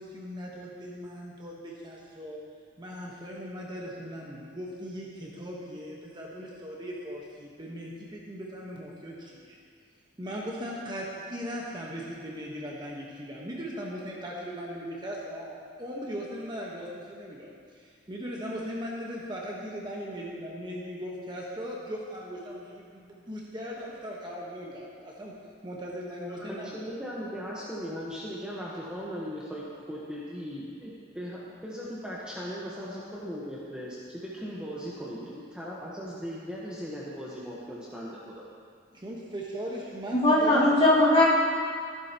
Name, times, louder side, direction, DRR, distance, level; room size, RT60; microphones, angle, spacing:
voice 1, 0.0-2.4 2.8-9.6 10.2-25.3 25.6-26.8 35.1-35.2 38.9-40.6, equal, 25° right, -3 dB, 1.2 m, -38 dB
voice 2, 26.3-38.4, equal, 5° right, -7 dB, 1.2 m, -38 dB
voice 3, 40.1-41.2, left 1 dB, 35° left, -8 dB, 2.8 m, -20 dB
14.5 x 11.5 x 3.0 m, 2.2 s
head